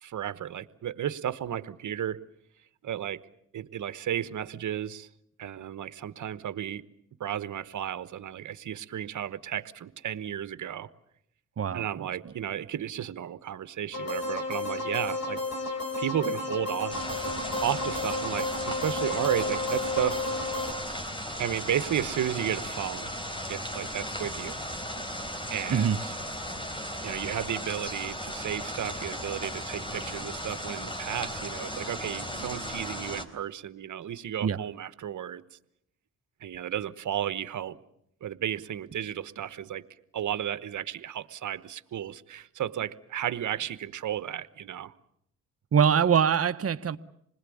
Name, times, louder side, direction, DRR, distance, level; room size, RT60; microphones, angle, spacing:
voice 1, 0.0-2.3 2.8-3.2 3.5-5.1 5.4-6.8 7.2-10.9 11.7-15.4 16.0-17.1 17.6-20.2 21.4-23.1 23.5-24.5 25.5-25.9 27.0-35.4 36.4-37.8 38.2-39.8 40.1-44.9, right 10 dB, 70° right, 14 dB, 1.2 m, -33 dB
voice 2, 11.6-12.3 25.7-26.0 34.4-34.6 45.7-47.0, right 7 dB, 50° right, 10 dB, 1.1 m, -24 dB
sound 1, 13.9-20.7, left 2 dB, 50° left, 6.2 m, -32 dB
sound 2, 16.9-33.2, equal, 15° left, 3.9 m, -36 dB
27.5 x 20.5 x 8.6 m, 0.74 s
cardioid pair, 70°, 32 cm